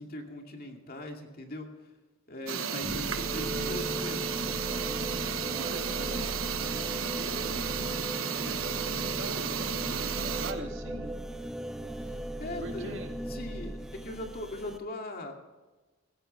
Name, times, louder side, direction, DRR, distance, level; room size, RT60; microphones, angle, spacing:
voice 1, 0.0-1.9 2.3-4.3 12.0-12.9 13.3-15.3, left 1 dB, 45° left, 2 dB, 2.3 m, -40 dB
sound 1, 2.5-10.5, right 7 dB, 80° right, 1.3 m, -33 dB
voice 2, 2.7-3.4 5.5-6.3 7.1-7.6 8.4-11.1 12.6-13.2, right 1 dB, 60° right, 3 dB, 2.1 m, -42 dB
sound 2, 2.8-14.8, equal, 5° right, 0.7 m, -37 dB
17.0 x 16.0 x 3.3 m, 1.2 s
head